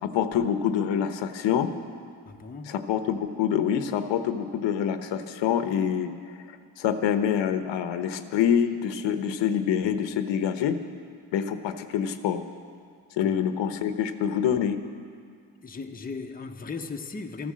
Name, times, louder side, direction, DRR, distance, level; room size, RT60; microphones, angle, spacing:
voice 1, 0.0-1.7 2.7-6.1 6.8-10.8 11.3-12.4 13.2-14.8, left 8 dB, 80° left, 9 dB, 1.0 m, -26 dB
voice 2, 2.2-2.8 13.2-13.4 15.6-17.5, left 4 dB, 20° left, 4 dB, 0.9 m, -37 dB
13.0 x 11.5 x 7.5 m, 2.2 s
cardioid pair, 95°, 44 cm